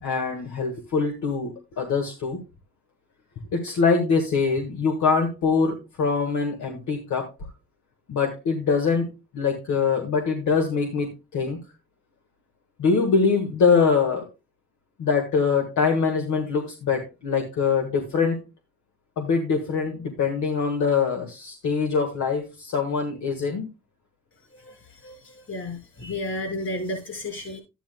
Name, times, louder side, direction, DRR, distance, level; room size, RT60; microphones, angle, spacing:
voice 1, 0.0-2.4 3.5-7.2 8.1-9.1 9.3-11.6 12.8-14.2 15.0-18.4 19.2-23.7, left 5 dB, 70° left, 4 dB, 1.6 m, -23 dB
voice 2, 25.0-27.6, left 1 dB, 50° left, 2 dB, 6.0 m, -32 dB
12.5 x 10.0 x 2.2 m, 0.27 s
cardioid pair, 90°, 30 cm